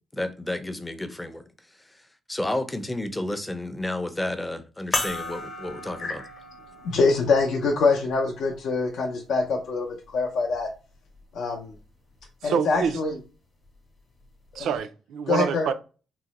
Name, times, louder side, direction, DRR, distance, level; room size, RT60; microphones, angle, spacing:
voice 1, 0.1-1.5 1.8-2.0 2.3-6.2, left 1 dB, 10° left, 0.5 m, -31 dB
sound 1, 4.9-9.7 10.5-10.6 12.8-12.9, left 2 dB, 35° left, 0.8 m, -36 dB
voice 2, 6.0-6.3 6.8-10.7 11.3-11.7 12.4-13.2 14.5-14.7 15.3-15.7, left 4 dB, 70° left, 0.5 m, -24 dB
voice 3, 12.4-13.0 14.5-15.7, right 7 dB, 75° right, 0.3 m, -26 dB
3.6 x 2.0 x 2.9 m
cardioid pair, 90°, 0 cm